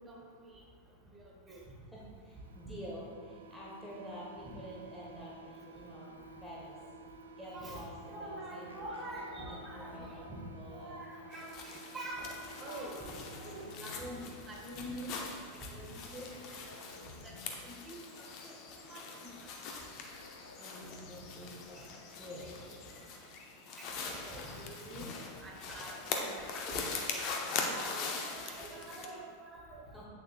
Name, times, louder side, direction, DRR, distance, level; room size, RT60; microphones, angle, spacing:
voice 1, 0.1-0.5 1.1-1.6 4.4-4.5 7.5-7.8 8.1-10.2 10.7-12.3 12.6-13.0 13.4-15.1 15.7-16.4 16.6-16.7 17.2-17.3 17.6-18.0 18.4-19.5 20.9-21.0 21.7-21.8 23.8-23.9 24.2-25.1 25.4-26.8 27.1-27.2 27.5-29.9, right 1 dB, 15° right, -3 dB, 1.6 m, -46 dB
voice 2, 1.9-6.8 7.4-11.4 20.6-23.0 29.9-30.1, equal, 5° left, -7 dB, 1.2 m, -49 dB
sound 1, 2.3-14.4, right 3 dB, 70° right, 0.5 m, -53 dB
sound 2, 8.7-10.5 12.5-14.2 16.3-17.8 20.1-21.7, left 2 dB, 75° left, 0.6 m, -54 dB
sound 3, 11.3-29.1, left 4 dB, 40° left, 0.9 m, -42 dB
8.4 x 7.4 x 2.4 m, 2.2 s
figure-of-eight pair, 90°, 0 cm